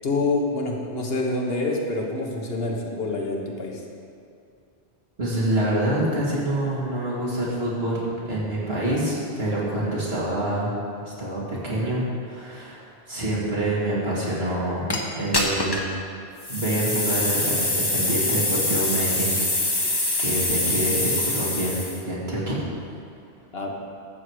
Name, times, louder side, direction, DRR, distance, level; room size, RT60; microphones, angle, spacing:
voice 1, 0.0-3.8 23.5-23.7, left 2 dB, 60° left, -1 dB, 1.5 m, -26 dB
voice 2, 5.2-10.7 11.1-12.8 13.1-14.9 15.2-15.8 16.5-19.3 19.7-22.6, right 1 dB, 65° right, -6 dB, 2.8 m, -26 dB
sound 1, 14.9-15.0 15.3-15.9 16.4-22.0, left 2 dB, 20° left, 1.1 m, -24 dB
12.5 x 7.7 x 4.9 m, 2.5 s
omnidirectional pair, 1.1 m